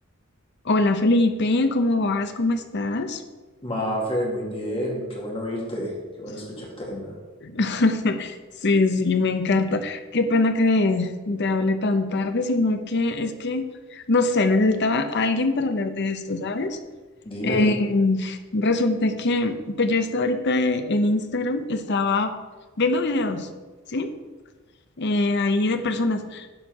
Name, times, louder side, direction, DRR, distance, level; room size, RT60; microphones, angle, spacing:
voice 1, 0.6-3.2 7.4-8.4 8.6-13.6 13.9-16.8 17.4-22.3 22.8-23.5 23.9-24.1 25.0-26.5, left 2 dB, 55° left, 8 dB, 0.8 m, -23 dB
voice 2, 3.6-7.1 17.2-17.7, equal, 25° left, -2 dB, 2.2 m, -29 dB
10.0 x 4.5 x 5.9 m, 1.3 s
head